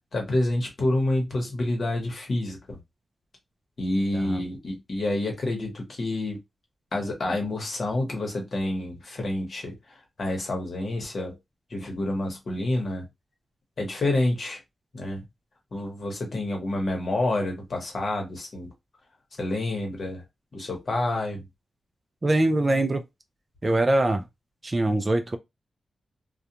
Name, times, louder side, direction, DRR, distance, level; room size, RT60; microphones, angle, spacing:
voice 1, 0.1-2.8 3.8-6.4 6.9-11.4 11.7-13.1 13.8-14.6 14.9-15.2 15.7-18.7 19.4-20.2 20.5-21.5, left 1 dB, 50° left, 1.0 m, -28 dB
voice 2, 22.2-23.0 23.6-24.2 24.6-25.4, right 2 dB, 25° right, 0.3 m, -23 dB
2.4 x 2.1 x 2.8 m
wide cardioid pair, 125°, 0 cm